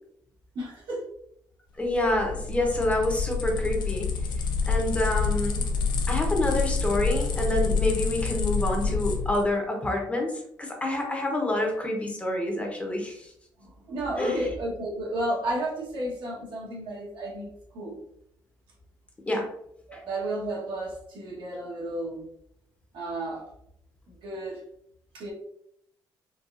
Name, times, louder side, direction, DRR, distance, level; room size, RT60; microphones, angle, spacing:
voice 1, 0.5-1.0 13.6-18.0 19.9-22.3 22.9-23.5 24.1-24.6 25.1-25.3, right 1 dB, 80° right, -4 dB, 1.2 m, -32 dB
sound 1, 1.8-9.5, left 4 dB, 70° left, 0.6 m, -27 dB
voice 2, 1.8-4.1 4.7-5.6 6.1-13.3 14.2-14.4 19.3-19.5, left 1 dB, 15° left, 1 dB, 0.6 m, -27 dB
3.9 x 2.3 x 2.4 m, 0.74 s
cardioid pair, 135°, 8 cm